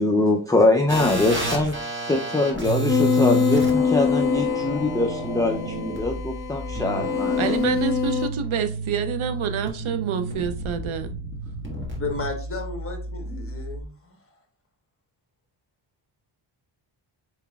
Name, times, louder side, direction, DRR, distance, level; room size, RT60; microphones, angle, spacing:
voice 1, 0.0-7.7, left 2 dB, 10° left, 0.3 m, -23 dB
sound 1, 0.9-13.8, right 3 dB, 25° right, 1.4 m, -31 dB
sound 2, 2.9-8.3, left 7 dB, 50° left, 0.6 m, -24 dB
voice 2, 7.4-11.1, right 7 dB, 70° right, 0.6 m, -27 dB
voice 3, 12.0-14.2, left 3 dB, 25° left, 1.0 m, -33 dB
4.4 x 3.9 x 2.2 m
wide cardioid pair, 90°, 50 cm